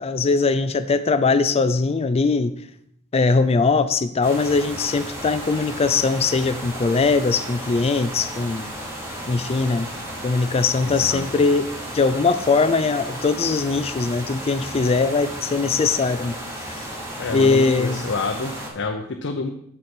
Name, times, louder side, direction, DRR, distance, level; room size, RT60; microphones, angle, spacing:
voice 1, 0.0-2.5 3.1-8.7 9.3-9.9 10.2-16.4 16.6-16.9 17.3-18.0, left 4 dB, 25° left, 0.4 m, -21 dB
sound 1, 4.2-18.7, right 1 dB, 15° right, 1.8 m, -34 dB
voice 2, 10.8-11.3 17.2-19.5, left 3 dB, 55° left, 0.7 m, -28 dB
7.8 x 7.5 x 4.4 m
head